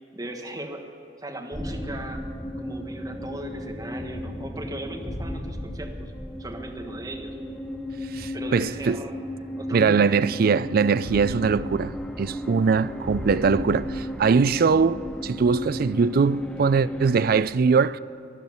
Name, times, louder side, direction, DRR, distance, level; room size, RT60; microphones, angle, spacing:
voice 1, 0.1-0.8 1.2-2.2 2.5-6.1 6.4-7.3 8.3-9.1 9.6-10.1, right 1 dB, 20° right, 1.5 m, -37 dB
sound 1, 1.5-17.4, equal, 5° left, 0.8 m, -34 dB
voice 2, 8.1-9.0 9.7-11.9 12.2-18.0, right 5 dB, 55° right, 0.4 m, -21 dB
12.5 x 11.5 x 9.5 m
head